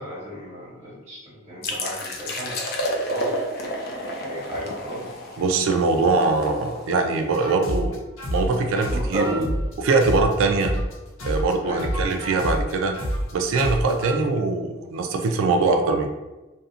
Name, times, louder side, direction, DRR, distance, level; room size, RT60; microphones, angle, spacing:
voice 1, 0.0-3.3 4.1-5.1 8.7-9.3 11.6-11.9, right 1 dB, 35° right, -11 dB, 1.3 m, -33 dB
sound 1, 1.6-7.2, equal, 45° left, 0.4 m, -31 dB
voice 2, 5.4-8.0 8.3-9.5 9.8-10.7 11.2-13.0 13.3-16.1, right 3 dB, 75° right, 5 dB, 0.3 m, -22 dB
sound 2, 7.3-10.9 11.2-14.1, equal, 80° left, 0.7 m, -28 dB
2.5 x 2.0 x 2.7 m, 1.1 s
head